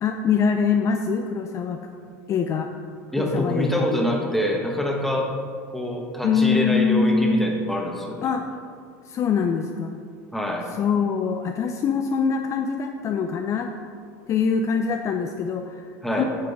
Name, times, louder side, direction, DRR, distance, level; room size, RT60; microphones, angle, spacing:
voice 1, 0.0-1.8 2.3-2.7 3.2-3.9 6.2-7.5 8.2-8.5 9.1-10.0 10.7-13.8 14.3-16.2, left 5 dB, 40° left, 5 dB, 0.5 m, -23 dB
voice 2, 3.1-5.3 5.7-8.3 10.3-10.7 16.0-16.2, equal, ahead, 0 dB, 1.3 m, -25 dB
8.6 x 3.7 x 6.9 m, 2.2 s
supercardioid pair, 105°, 8 cm